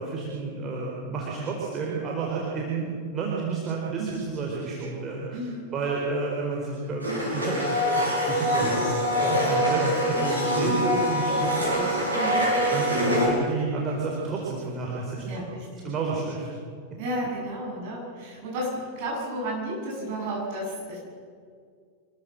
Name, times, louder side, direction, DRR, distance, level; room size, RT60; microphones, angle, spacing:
voice 1, 0.0-5.4 5.7-12.0 12.7-15.4 15.8-16.5, right 4 dB, 25° right, -3 dB, 4.3 m, -31 dB
voice 2, 5.3-5.7 12.1-12.4 15.3-15.9 17.0-21.0, right 1 dB, 45° right, -2 dB, 7.9 m, -32 dB
Domestic sounds home sounds, 7.0-13.3, equal, 80° right, 6.5 m, -24 dB
26.0 x 13.5 x 7.7 m, 2.1 s
figure-of-eight pair, 90°, 0 cm